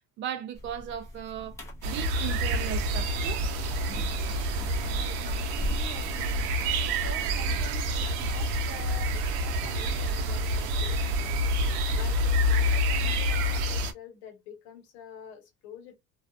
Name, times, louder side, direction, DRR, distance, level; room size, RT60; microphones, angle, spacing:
voice 1, 0.2-3.4 4.8-5.3, right 9 dB, 40° right, 0.4 m, -37 dB
sound 1, 0.5-9.5, left 1 dB, 10° left, 0.7 m, -40 dB
sound 2, 1.8-13.9, equal, 85° right, 0.6 m, -28 dB
voice 2, 4.5-6.5 6.8-11.4 11.9-16.0, left 8 dB, 80° left, 0.9 m, -47 dB
2.4 x 2.3 x 2.4 m
cardioid pair, 150°, 29 cm